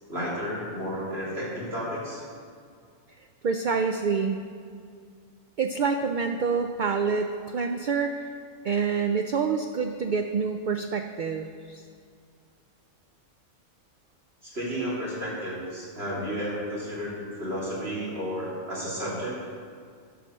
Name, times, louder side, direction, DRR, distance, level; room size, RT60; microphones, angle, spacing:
voice 1, 0.1-2.2 14.4-19.4, equal, 50° right, -7 dB, 3.4 m, -32 dB
voice 2, 3.4-4.4 5.6-8.2 8.6-11.8, right 5 dB, 80° right, 6 dB, 0.4 m, -27 dB
11.5 x 4.9 x 6.4 m, 2.2 s
omnidirectional pair, 1.4 m